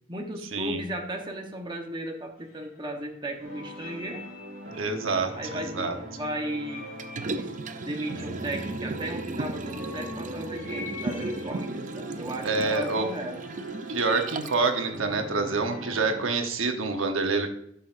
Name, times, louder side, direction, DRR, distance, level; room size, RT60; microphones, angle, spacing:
voice 1, 0.1-4.2 5.3-6.9 7.2-7.5 7.8-13.4, right 1 dB, 25° right, 2 dB, 1.1 m, -35 dB
sound 1, 1.1-1.5 2.4-3.1 3.4-16.6, left 4 dB, 50° left, 3.0 m, -47 dB
sound 2, 3.4-16.3, right 1 dB, 65° right, 1.7 m, -41 dB
voice 2, 4.7-6.0 12.4-13.1 13.9-17.5, right 3 dB, 90° right, 5 dB, 1.1 m, -27 dB
Liquid, 7.0-14.7 15.1-15.2, right 2 dB, 40° right, 0.5 m, -36 dB
11.0 x 5.8 x 2.6 m, 0.72 s
head